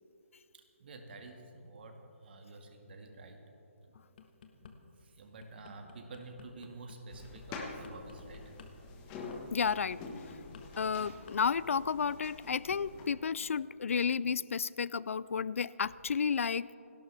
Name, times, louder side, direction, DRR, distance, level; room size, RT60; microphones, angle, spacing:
voice 1, 0.5-3.4 4.6-4.7 5.0-8.6, right 3 dB, 45° right, 4 dB, 1.8 m, -50 dB
sound 1, 3.9-4.7 5.2-11.4 11.6-11.9, left 7 dB, 40° left, 1.4 m, -55 dB
sound 2, 7.1-13.1, left 3 dB, 15° left, 1.4 m, -46 dB
voice 2, 9.5-10.0 10.8-16.8, left 6 dB, 70° left, 20 dB, 0.4 m, -32 dB
28.5 x 12.5 x 3.4 m, 3.0 s
hypercardioid pair, 165°, 8 cm